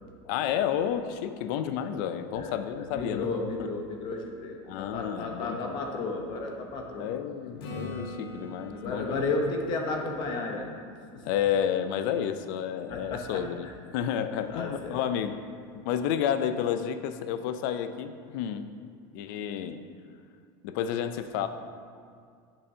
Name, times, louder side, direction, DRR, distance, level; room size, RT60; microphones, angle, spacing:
voice 1, 0.3-3.3 3.6-3.7 4.7-5.8 7.0-9.3 11.2-13.7 13.9-15.4 15.9-18.7 19.1-19.8 20.6-21.5, left 9 dB, 55° left, 10 dB, 0.4 m, -30 dB
voice 2, 2.3-7.1 7.9-8.1 8.7-10.7 11.1-11.3 12.9-13.7 14.5-15.0, left 3 dB, 40° left, 2 dB, 0.8 m, -33 dB
Acoustic guitar / Strum, 7.6-11.4 16.2-16.3, left 1 dB, 80° left, 1.3 m, -43 dB
8.6 x 6.9 x 2.8 m, 2.2 s
supercardioid pair, 170°, 12 cm